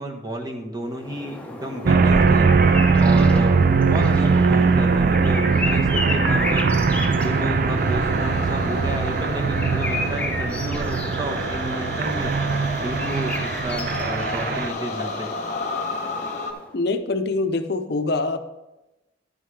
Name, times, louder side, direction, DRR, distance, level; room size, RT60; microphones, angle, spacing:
voice 1, 0.0-15.3, right 1 dB, 20° right, 1 dB, 1.2 m, -32 dB
sound 1, 0.8-16.8, left 2 dB, 5° left, 0.9 m, -33 dB
sound 2, 1.9-14.7, right 4 dB, 50° right, 0.4 m, -20 dB
sound 3, 7.0-16.5, left 3 dB, 40° left, 1.1 m, -33 dB
voice 2, 16.7-18.4, left 3 dB, 55° left, 8 dB, 0.7 m, -24 dB
11.5 x 9.0 x 3.3 m, 1.0 s
head